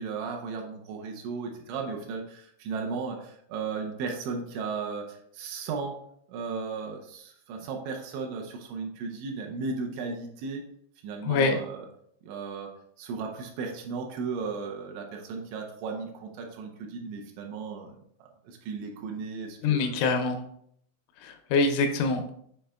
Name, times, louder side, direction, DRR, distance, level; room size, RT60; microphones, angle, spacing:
voice 1, 0.0-6.0 6.3-10.6 11.0-11.9 12.2-12.7 13.0-20.0, right 4 dB, 80° right, 1 dB, 2.9 m, -35 dB
voice 2, 11.3-11.6 19.6-20.4 21.2-22.3, left 4 dB, 80° left, 6 dB, 2.9 m, -25 dB
8.7 x 4.9 x 2.2 m, 0.68 s
omnidirectional pair, 5.6 m